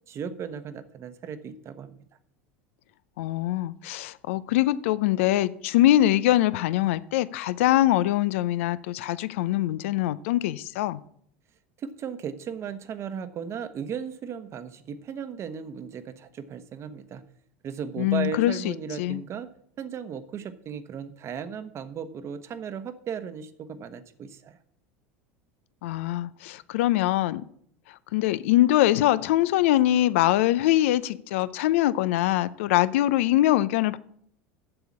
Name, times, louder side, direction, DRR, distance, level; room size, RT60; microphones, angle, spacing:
voice 1, 0.1-2.0 11.8-17.2 17.6-19.5 19.8-24.6, right 7 dB, 40° right, 1.0 m, -36 dB
voice 2, 3.2-11.0 18.0-19.2 25.8-27.4 28.1-34.0, left 14 dB, 75° left, 0.5 m, -23 dB
7.9 x 6.9 x 7.3 m
hypercardioid pair, 85°, 7 cm